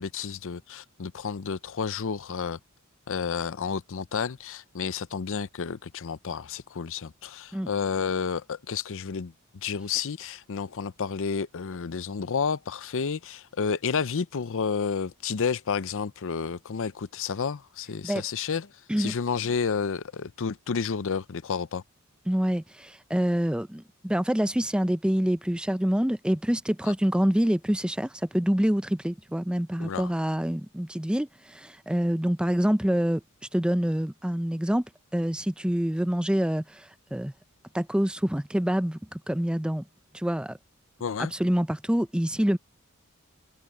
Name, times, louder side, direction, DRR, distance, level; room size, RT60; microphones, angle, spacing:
voice 1, 0.0-2.6 3.1-18.7 19.0-21.8 26.8-26.9 29.8-30.1 41.0-41.3, left 6 dB, 65° left, 0.6 m, -31 dB
voice 2, 22.3-33.2 33.5-34.8 35.1-37.3 37.7-39.8 40.1-40.6 41.2-42.6, equal, 5° right, 0.5 m, -26 dB
head